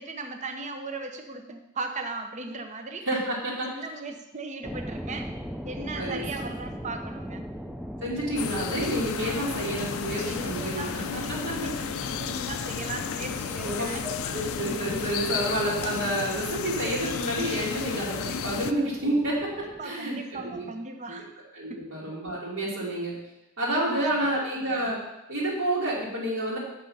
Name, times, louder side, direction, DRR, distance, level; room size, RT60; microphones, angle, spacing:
voice 1, 0.0-3.1 3.7-5.3 5.6-7.4 10.2-14.1 19.8-21.3 21.7-21.8 23.8-24.3, right 3 dB, 35° right, 6 dB, 0.7 m, -37 dB
voice 2, 3.1-3.8 5.9-6.5 8.0-11.9 13.6-20.6 21.1-21.2 21.5-23.1 23.6-25.0 25.3-26.6, right 1 dB, 65° right, -6 dB, 2.3 m, -29 dB
sound 1, 4.6-19.8, equal, ahead, 0.3 m, -41 dB
sound 2, 8.4-18.7, left 7 dB, 80° left, 0.4 m, -33 dB
6.9 x 5.6 x 5.5 m, 0.93 s
head